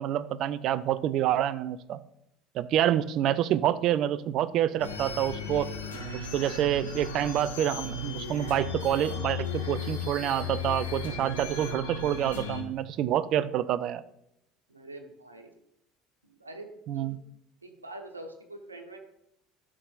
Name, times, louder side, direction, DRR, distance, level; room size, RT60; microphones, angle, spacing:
voice 1, 0.0-2.0 2.5-5.7 6.1-14.0 16.9-17.2, right 11 dB, 50° right, 15 dB, 0.4 m, -27 dB
sound 1, 4.8-12.6, left 4 dB, 85° left, 1.4 m, -36 dB
voice 2, 14.7-15.5 16.2-17.1 17.6-19.0, right 2 dB, 90° right, 5 dB, 1.0 m, -45 dB
12.5 x 6.1 x 2.5 m, 0.80 s
figure-of-eight pair, 65°, 0 cm